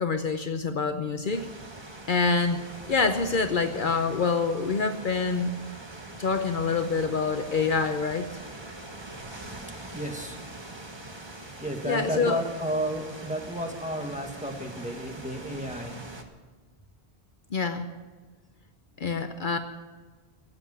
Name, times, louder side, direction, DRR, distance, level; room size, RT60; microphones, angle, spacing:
voice 1, 0.0-1.5 2.1-2.6 2.9-5.6 6.2-8.3 11.9-12.4 17.5-17.9 19.0-19.6, left 4 dB, 55° left, 7 dB, 0.9 m, -26 dB
sound 1, 1.3-16.2, right 2 dB, 25° right, 1.3 m, -43 dB
voice 2, 9.9-10.4 11.6-16.0, equal, 5° right, 2 dB, 1.6 m, -32 dB
15.5 x 8.1 x 9.8 m, 1.4 s
omnidirectional pair, 1.0 m